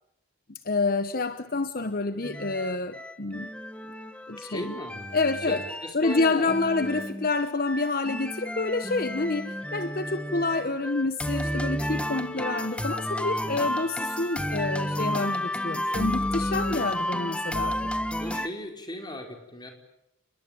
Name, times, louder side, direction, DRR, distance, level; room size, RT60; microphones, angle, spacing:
voice 1, 0.5-3.5 4.3-4.8 5.1-5.6 5.9-17.9, left 3 dB, 45° left, 1.1 m, -28 dB
sound 1, 2.2-18.5, equal, 5° left, 1.3 m, -32 dB
voice 2, 4.4-5.1 5.4-7.0 10.2-10.6 13.4-13.7 16.3-16.9 18.2-19.7, equal, 20° left, 5.1 m, -39 dB
29.5 x 22.0 x 9.2 m
head